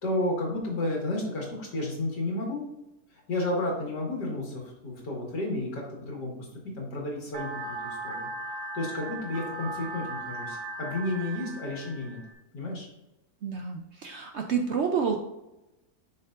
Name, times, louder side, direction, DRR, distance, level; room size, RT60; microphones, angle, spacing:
voice 1, 0.0-2.6 3.3-6.5 6.8-7.5 7.8-8.3 8.7-12.2 12.5-12.9, left 2 dB, 85° left, -2 dB, 2.5 m, -32 dB
sound 1, 7.3-12.3, right 2 dB, 90° right, 1.6 m, -37 dB
voice 2, 13.4-15.2, right 6 dB, 65° right, 3 dB, 0.7 m, -29 dB
7.1 x 5.8 x 2.5 m, 0.97 s
omnidirectional pair, 1.7 m